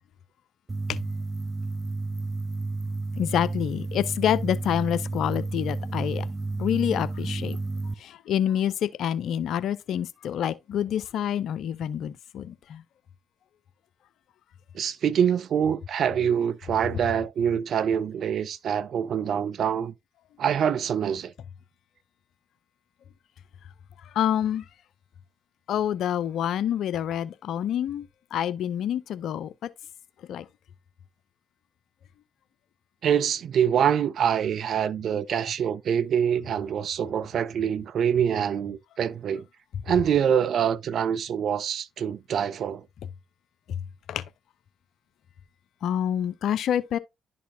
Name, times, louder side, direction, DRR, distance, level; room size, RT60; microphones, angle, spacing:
sound 1, 0.7-7.9, right 3 dB, 25° right, 0.8 m, -31 dB
voice 1, 3.1-6.3 6.6-7.6 8.0-12.8 24.0-24.6 25.7-29.7 30.3-30.5 43.7-43.8 44.1-44.2 45.8-47.0, left 10 dB, 55° left, 0.5 m, -27 dB
voice 2, 14.7-19.9 20.4-21.3 33.0-39.4 39.9-42.8, right 8 dB, 50° right, 0.5 m, -25 dB
11.0 x 4.2 x 2.4 m
figure-of-eight pair, 45°, 0 cm